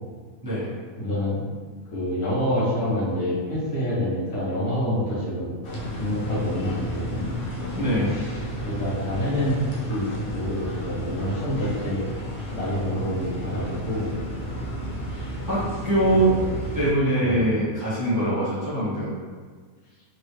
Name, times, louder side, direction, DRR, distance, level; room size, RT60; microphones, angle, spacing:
voice 1, 0.4-0.8 7.8-8.2 15.5-16.3 16.7-19.1, right 1 dB, 15° right, -10 dB, 0.8 m, -23 dB
voice 2, 1.0-1.4 1.9-5.5 5.9-7.3 8.6-9.6 9.9-12.0 12.5-14.1 16.3-16.4 17.2-17.4, equal, 85° left, -8 dB, 1.6 m, -27 dB
sound 1, 5.6-16.9, equal, 65° left, 1.0 m, -32 dB
3.7 x 2.1 x 3.2 m, 1.5 s
omnidirectional pair, 1.6 m